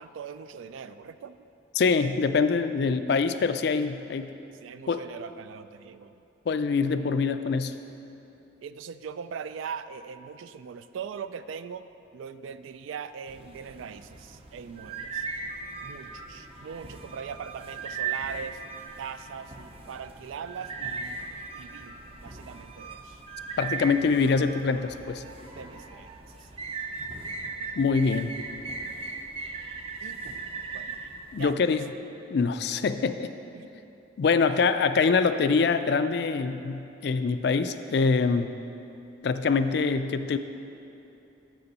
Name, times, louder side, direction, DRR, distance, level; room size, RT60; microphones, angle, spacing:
voice 1, 0.0-1.4 4.6-6.1 8.6-11.9 12.1-15.2 15.8-18.6 19.0-21.2 21.5-21.9 22.2-23.2 25.2-26.1 26.3-26.5 30.0-30.4 30.7-31.1 31.4-31.8 33.5-33.8, right 7 dB, 85° right, 12 dB, 0.3 m, -41 dB
voice 2, 1.8-4.3 4.9-5.0 6.5-7.7 23.6-25.2 27.8-28.4 31.3-31.8 32.3-33.3 34.2-38.6 39.2-40.4, left 4 dB, 60° left, 10 dB, 0.3 m, -24 dB
sound 1, 13.3-31.5, right 4 dB, 30° right, 0.5 m, -38 dB
7.0 x 6.9 x 5.3 m, 2.9 s
head